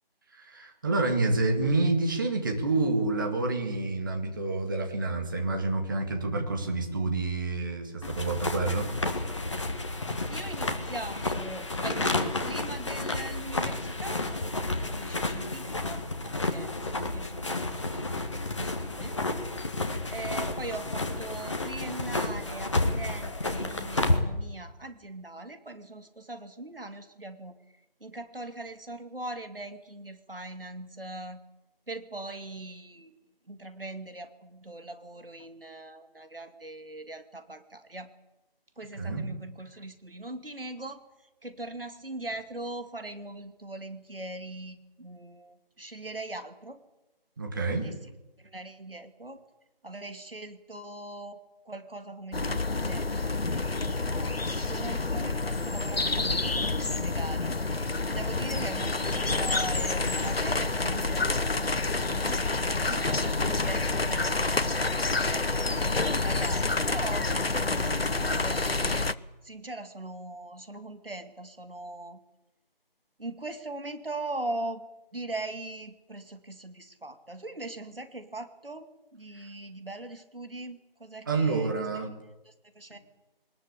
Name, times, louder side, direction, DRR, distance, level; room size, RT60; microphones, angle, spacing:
voice 1, 0.3-8.9 39.0-39.2 47.4-47.9 81.3-82.1, right 3 dB, 20° right, 3 dB, 2.0 m, -28 dB
sound 1, 8.0-24.2, left 2 dB, 30° left, 1.8 m, -31 dB
voice 2, 10.3-18.2 18.6-19.2 20.1-27.5 28.0-31.4 31.9-33.2 33.5-38.1 38.8-41.0 41.4-46.8 47.7-48.0 48.4-49.4 49.8-57.6 58.1-61.7 62.0-62.4 62.9-69.1 69.4-72.2 73.2-74.9 75.1-82.1 82.5-83.0, right 2 dB, 70° right, 9 dB, 2.5 m, -41 dB
sound 2, 52.3-69.1, left 3 dB, 85° left, 1.0 m, -28 dB
22.0 x 20.0 x 8.4 m, 0.99 s
figure-of-eight pair, 160°, 30 cm